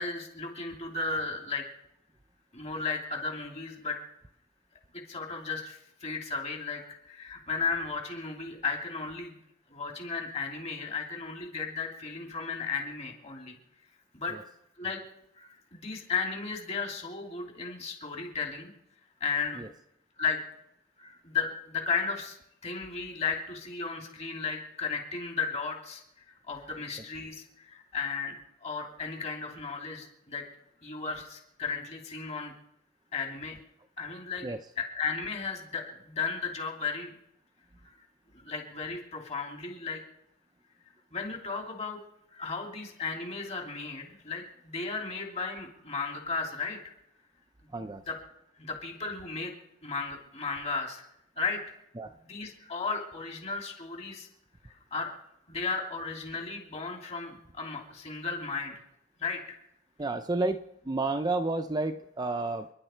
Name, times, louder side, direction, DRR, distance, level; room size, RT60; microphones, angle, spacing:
voice 1, 0.0-1.6 2.5-4.0 4.9-9.4 9.7-13.6 14.1-14.3 14.8-15.0 15.4-18.7 19.2-19.6 20.2-20.4 21.0-22.4 22.6-26.0 26.3-28.3 28.6-30.4 30.8-32.5 33.1-33.5 34.0-34.5 34.8-37.1 37.8-38.0 38.3-40.0 41.1-42.0 42.3-46.9 48.1-48.2 48.6-49.5 49.8-51.1 51.4-51.8 52.2-54.3 54.6-55.1 55.5-58.8 59.2-59.6, left 4 dB, 30° left, 1 dB, 2.9 m, -35 dB
voice 2, 47.7-48.0 52.0-52.1 60.0-62.7, right 2 dB, 20° right, 7 dB, 0.5 m, -31 dB
28.5 x 11.0 x 4.5 m, 0.81 s
head